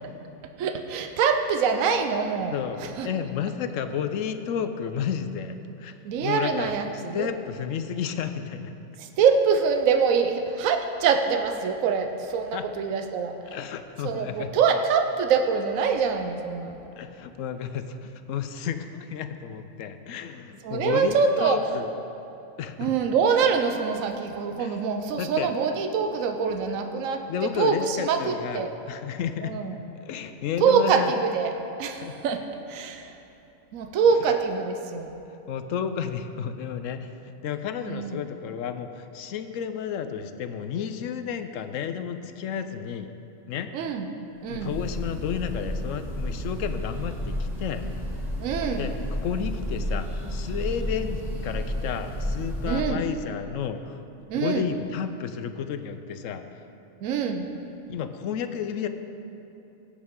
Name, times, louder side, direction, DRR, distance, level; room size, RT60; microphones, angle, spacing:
voice 1, 0.6-2.6 3.0-3.1 6.0-7.3 9.0-13.3 14.0-16.8 20.6-21.6 22.8-28.7 29.4-29.7 30.6-31.5 31.8-32.4 32.7-33.1 33.7-35.2 37.9-38.2 43.7-44.1 44.4-44.8 48.4-48.9 52.7-53.0 54.3-54.7 57.0-57.5, right 6 dB, 80° right, 6 dB, 1.1 m, -24 dB
voice 2, 2.5-8.7 12.5-12.6 13.5-14.5 17.0-21.9 22.6-23.0 24.6-24.8 25.2-25.5 27.3-29.6 30.1-31.1 32.0-32.1 35.5-37.1 37.4-43.1 43.5-43.7 44.5-47.8 48.8-48.9 49.2-54.0 54.3-56.4 57.9-58.9, left 8 dB, 75° left, 9 dB, 0.9 m, -32 dB
Breathing / Bird, 44.4-53.0, equal, ahead, 2.2 m, -31 dB
16.0 x 8.3 x 3.7 m, 2.9 s
omnidirectional pair, 1.4 m